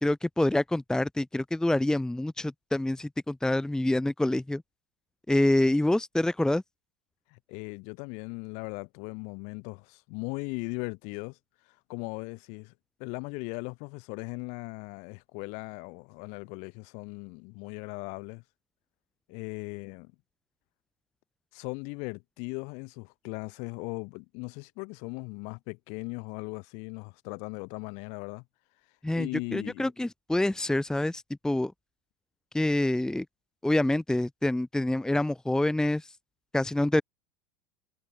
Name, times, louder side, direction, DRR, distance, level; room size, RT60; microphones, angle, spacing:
voice 1, 0.0-4.6 5.3-6.6 29.0-31.7 32.5-33.2 33.6-36.1 36.5-37.0, left 1 dB, 5° left, 1.1 m, -26 dB
voice 2, 7.3-11.4 11.9-12.7 13.0-18.4 19.3-20.1 21.5-28.4 29.1-29.9, left 33 dB, 60° left, 4.4 m, -38 dB
hypercardioid pair, 100°, 13 cm